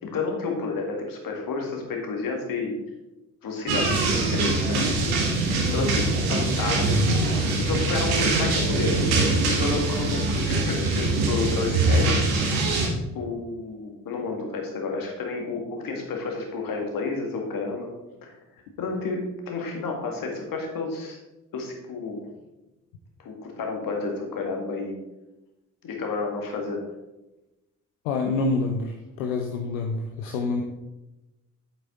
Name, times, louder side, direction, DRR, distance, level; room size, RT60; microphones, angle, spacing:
voice 1, 0.0-2.7 3.4-4.8 5.7-7.0 7.6-9.1 9.5-12.3 13.1-17.9 18.2-18.4 18.8-21.2 21.5-22.2 23.2-25.0 25.8-26.9, left 4 dB, 55° left, 2 dB, 2.1 m, -30 dB
sound 1, 3.7-12.9, right 2 dB, 65° right, 1.8 m, -23 dB
voice 2, 4.8-5.1 28.0-30.6, left 3 dB, 80° left, 2 dB, 0.8 m, -27 dB
8.4 x 7.4 x 3.9 m, 0.99 s
figure-of-eight pair, 40°, 40 cm